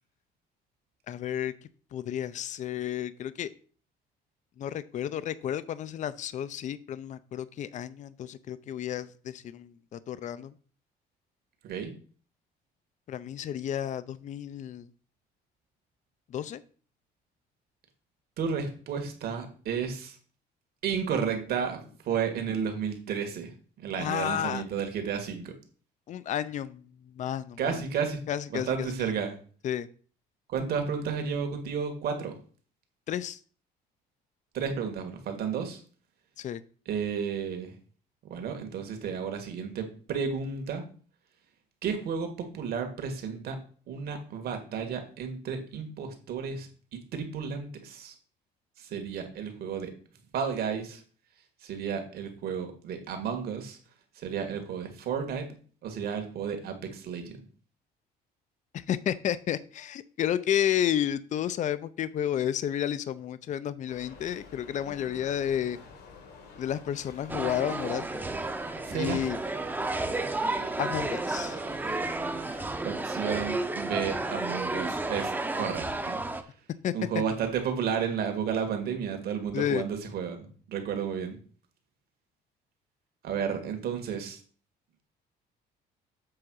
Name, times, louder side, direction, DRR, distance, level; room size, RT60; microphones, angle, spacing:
voice 1, 1.1-1.5 1.9-3.5 4.6-10.5 13.1-14.9 16.3-16.6 24.0-24.6 26.1-26.8 27.1-27.8 28.3-28.9 29.6-29.9 33.1-33.4 36.4-36.6 58.7-65.8 66.6-68.1 68.9-69.4 70.8-71.6 76.8-77.2 79.5-79.8, left 10 dB, 45° left, 16 dB, 0.5 m, -31 dB
voice 2, 18.4-20.2 20.8-21.8 22.1-25.5 27.6-28.2 28.5-29.3 30.5-32.4 34.5-35.8 36.9-37.7 38.2-40.8 41.8-43.6 43.9-46.7 47.1-48.1 48.8-49.9 50.3-51.0 51.6-53.8 54.2-55.5 55.8-57.3 68.8-69.2 72.8-76.2 76.9-81.4 83.2-84.4, right 7 dB, 65° right, 5 dB, 1.9 m, -32 dB
sound 1, 63.9-72.7, left 4 dB, 80° left, 2.3 m, -49 dB
sound 2, 67.3-76.4, right 2 dB, 10° right, 0.7 m, -32 dB
7.7 x 3.5 x 6.3 m, 0.42 s
cardioid pair, 110°, 17 cm